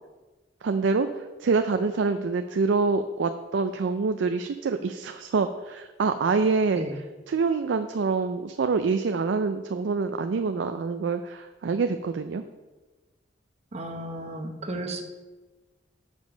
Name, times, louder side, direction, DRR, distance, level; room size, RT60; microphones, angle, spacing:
voice 1, 0.6-6.9 7.3-12.4, right 4 dB, 80° right, 8 dB, 0.4 m, -26 dB
voice 2, 13.7-15.0, right 1 dB, 35° right, 5 dB, 0.9 m, -34 dB
6.8 x 5.3 x 6.2 m, 1.2 s
head